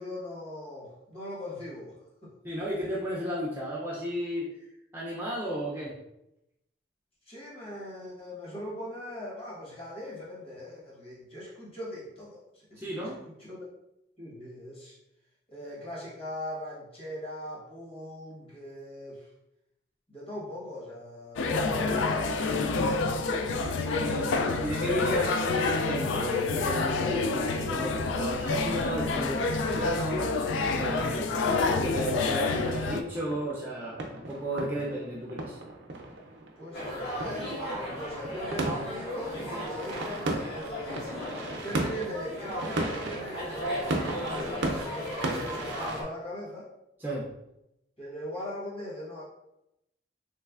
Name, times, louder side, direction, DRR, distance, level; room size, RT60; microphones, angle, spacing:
voice 1, 0.0-2.3 7.3-13.1 13.5-13.6 14.2-15.0 15.5-19.3 20.1-23.2 36.6-41.1 41.6-46.7 48.0-49.2, left 1 dB, 30° left, -6 dB, 1.1 m, -40 dB
voice 2, 2.4-4.5 4.9-5.9 12.8-13.2 22.5-22.8 24.0-24.3 24.6-30.3 30.7-31.3 31.7-35.6 47.0-47.3, equal, 10° right, -5 dB, 0.4 m, -34 dB
sound 1, 21.4-33.0, left 3 dB, 80° left, 0.3 m, -28 dB
sound 2, 29.7-46.0, right 2 dB, 65° right, 0.5 m, -37 dB
sound 3, 36.7-46.0, equal, 60° left, 1.3 m, -36 dB
3.2 x 3.2 x 2.4 m, 0.86 s
head